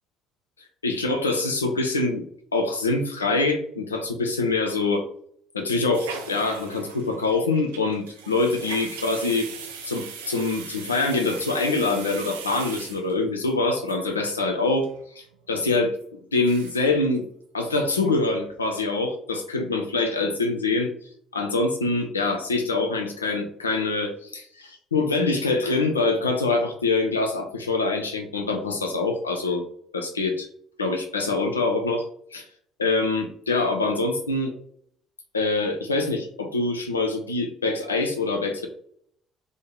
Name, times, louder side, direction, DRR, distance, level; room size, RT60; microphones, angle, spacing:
voice 1, 0.8-2.2 2.5-5.0 5.5-9.5 9.9-14.9 15.2-15.9 16.3-17.2 17.5-20.9 21.3-29.6 29.9-30.5 30.8-32.0 32.3-32.5 32.8-34.5 35.3-38.7, left 3 dB, 80° left, 4 dB, 0.3 m, -24 dB
sound 1, 5.9-13.5 13.9-14.0 14.2-14.3 14.6-15.0 15.3-15.4 16.0-16.1 16.3-16.9 17.2-17.3 17.6-18.1 18.4-18.6, right 6 dB, 75° right, 0.3 m, -40 dB
2.5 x 2.0 x 3.0 m, 0.65 s
figure-of-eight pair, 55°, 0 cm